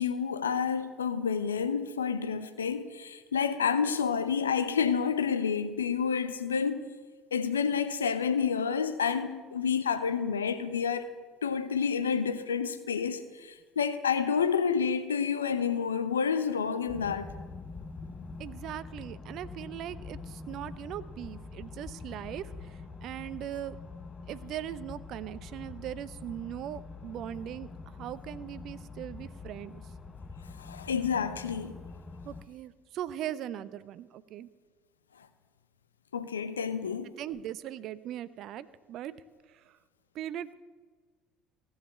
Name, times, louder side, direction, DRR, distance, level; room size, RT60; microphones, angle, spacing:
voice 1, 0.0-6.8 7.3-11.1 11.4-17.3 30.6-31.7 36.1-37.1, left 6 dB, 80° left, 0.8 m, -29 dB
sound 1, 16.9-32.5, left 4 dB, 25° left, 0.9 m, -45 dB
voice 2, 18.4-23.8 24.3-29.8 32.3-34.5 37.2-39.1 39.5-39.7 40.1-40.5, right 11 dB, 50° right, 0.6 m, -40 dB
16.0 x 7.5 x 7.9 m
figure-of-eight pair, 60°, 0 cm